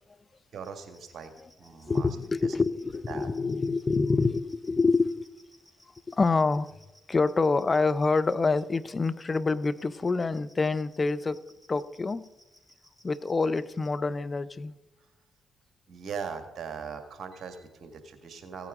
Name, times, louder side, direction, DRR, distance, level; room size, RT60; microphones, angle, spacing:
voice 1, 0.5-1.3 1.6-2.1 2.4-2.6 3.1-3.3 15.9-18.7, right 6 dB, 60° right, 1.8 m, -40 dB
sound 1, 0.6-13.9, equal, 5° left, 5.0 m, -59 dB
voice 2, 1.9-5.2 6.1-6.7 7.1-11.4 11.7-12.3 13.0-14.7, left 4 dB, 35° left, 0.6 m, -26 dB
16.5 x 9.1 x 3.7 m
hypercardioid pair, 50°, 0 cm